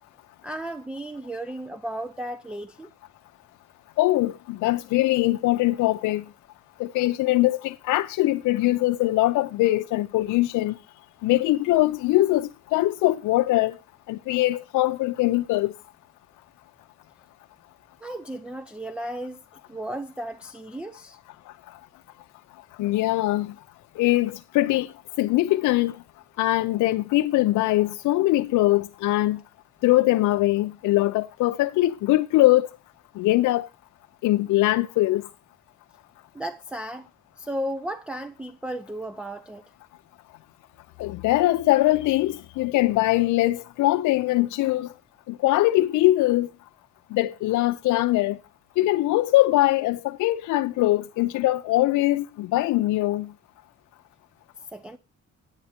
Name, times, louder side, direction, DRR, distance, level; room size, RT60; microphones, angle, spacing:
voice 1, 0.4-2.9 18.0-19.4 19.7-21.2 36.3-37.1 37.4-39.6 54.7-55.0, right 1 dB, 5° right, 0.5 m, -34 dB
voice 2, 4.0-6.2 6.8-10.8 11.2-13.8 14.1-15.7 22.8-23.5 24.0-24.9 25.2-26.0 26.4-29.4 29.8-32.7 33.2-33.7 34.2-35.2 41.0-44.9 45.3-46.5 47.1-48.4 48.8-53.3, left 17 dB, 80° left, 0.5 m, -22 dB
8.8 x 8.8 x 4.2 m
cardioid pair, 90°, 30 cm